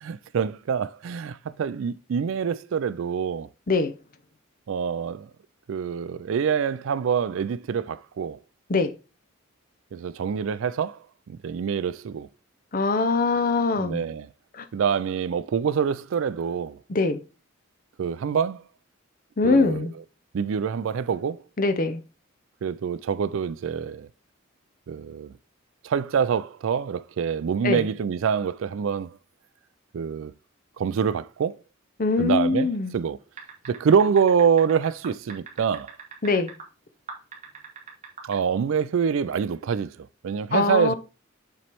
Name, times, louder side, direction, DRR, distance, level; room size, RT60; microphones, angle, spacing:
voice 1, 0.0-3.5 4.7-5.3 5.7-8.4 9.9-11.0 11.3-12.3 13.7-14.3 14.7-16.8 18.0-18.6 19.4-19.9 20.3-21.4 22.6-24.1 24.9-25.3 25.8-29.1 29.9-30.3 30.8-31.6 32.2-33.2 33.7-35.9 38.2-40.9, right 6 dB, 65° right, 0.3 m, -25 dB
voice 2, 12.7-14.0 16.9-17.2 19.4-19.9 21.6-22.0 27.6-27.8 32.0-32.9 36.2-36.5 40.5-40.9, left 3 dB, 40° left, 0.6 m, -22 dB
sound 1, 33.4-36.6 37.1-38.4, right 5 dB, 35° right, 1.4 m, -40 dB
7.0 x 3.2 x 4.4 m
head